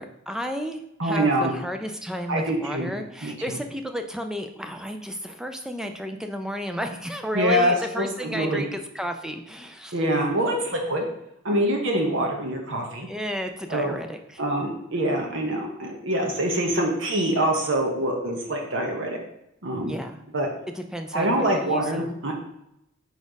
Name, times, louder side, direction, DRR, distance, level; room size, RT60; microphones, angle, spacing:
voice 1, 0.0-9.9 13.1-14.4 19.9-20.2 20.7-22.1, equal, 5° right, 6 dB, 0.4 m, -32 dB
voice 2, 1.0-1.5 2.3-2.9 3.2-3.6 7.3-8.7 9.9-11.0 11.4-13.1 13.7-14.0 14.4-19.2 19.6-20.0 20.3-20.5 21.1-22.3, right 1 dB, 65° right, 1 dB, 1.1 m, -25 dB
4.7 x 4.2 x 5.2 m, 0.82 s
head